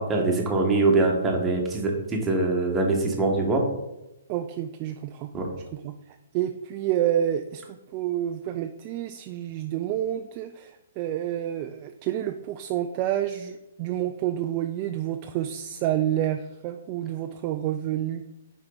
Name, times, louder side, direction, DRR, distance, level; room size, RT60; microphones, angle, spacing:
voice 1, 0.0-3.6 5.3-5.5, right 3 dB, 15° right, 0 dB, 1.3 m, -23 dB
voice 2, 4.3-5.3 5.7-18.2, right 11 dB, 35° right, 7 dB, 0.3 m, -29 dB
6.4 x 4.6 x 3.9 m, 0.94 s
hypercardioid pair, 140°, 0 cm